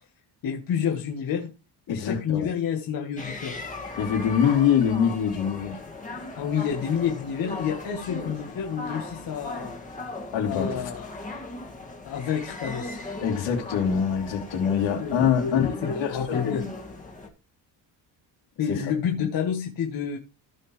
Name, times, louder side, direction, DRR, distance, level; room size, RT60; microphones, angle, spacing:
voice 1, 0.4-1.5 1.9-3.6 6.3-9.8 10.4-11.1 12.0-13.0 14.7-15.1 15.4-16.6 18.6-20.2, left 8 dB, 50° left, 1.5 m, -29 dB
voice 2, 1.9-2.5 4.0-5.8 10.3-10.9 13.2-15.7 16.0-16.7 18.7-18.8, left 8 dB, 75° left, 3.5 m, -24 dB
sound 1, 3.2-17.3, left 2 dB, 15° left, 1.7 m, -38 dB
15.5 x 5.5 x 3.3 m
cardioid pair, 180°, 45 cm